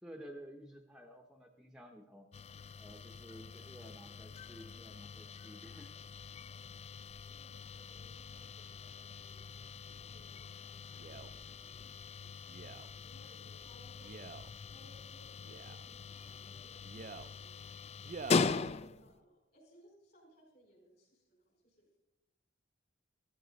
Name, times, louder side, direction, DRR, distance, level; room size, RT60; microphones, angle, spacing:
voice 1, 0.0-2.3 2.8-5.9, equal, 5° right, 3 dB, 0.8 m, -53 dB
sound 1, 2.3-19.2, left 4 dB, 30° left, 0.3 m, -41 dB
voice 2, 7.3-12.4 13.0-14.3 14.7-17.7 18.0-22.0, right 1 dB, 50° left, 0 dB, 5.0 m, -65 dB
Male speech man speaking, 10.9-11.3 12.5-12.9 14.0-14.5 15.4-15.9 16.8-17.3 18.0-18.5 19.2-19.3, right 5 dB, 40° right, 0.4 m, -47 dB
14.5 x 13.0 x 4.0 m, 0.96 s
head